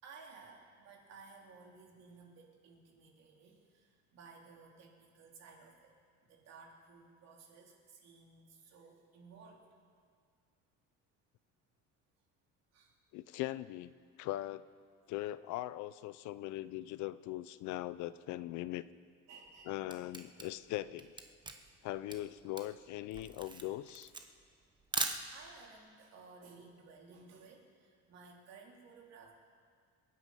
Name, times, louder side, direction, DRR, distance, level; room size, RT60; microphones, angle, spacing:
voice 1, 0.0-5.9 6.2-9.6 12.7-13.0 19.3-19.8 21.6-21.8 23.5-23.6 24.9-29.3, right 4 dB, 55° right, -1 dB, 3.3 m, -57 dB
voice 2, 13.1-13.9 14.2-14.7 15.1-18.9 19.7-21.1 21.8-24.1, left 15 dB, 70° left, 16 dB, 0.6 m, -40 dB
Camera, 19.5-25.7, right 3 dB, 15° right, 0.9 m, -41 dB
26.5 x 9.3 x 5.6 m, 2.1 s
cardioid pair, 150°, 31 cm